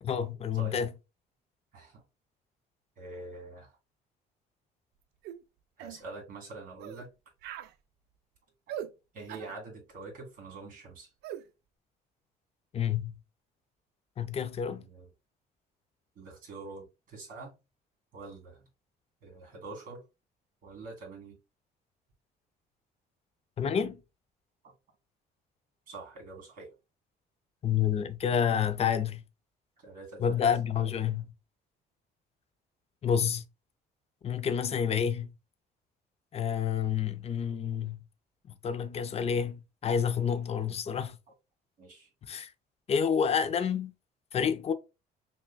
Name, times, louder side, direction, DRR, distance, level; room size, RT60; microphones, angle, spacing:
voice 1, 0.0-0.9 12.7-13.2 14.2-14.8 23.6-24.0 27.6-29.2 30.2-31.3 33.0-33.4 34.2-35.3 36.3-38.0 38.6-41.2 42.2-42.5 42.9-43.9 44.3-44.7, left 7 dB, 35° left, 0.5 m, -29 dB
voice 2, 1.7-2.0 3.0-3.8 5.8-7.1 8.7-8.8 9.1-11.1 14.8-15.1 16.2-17.6 18.1-18.7 19.2-20.0 20.6-21.4 24.6-24.7 25.9-26.7 29.8-30.4 41.8-42.1, right 3 dB, 55° right, 2.1 m, -45 dB
sound 1, 5.2-5.4 5.8-6.0 6.8-7.1 7.4-7.7 8.7-8.9 9.3-9.5 11.2-11.4, right 10 dB, 75° right, 0.4 m, -40 dB
5.9 x 2.1 x 2.2 m
cardioid pair, 110°, 17 cm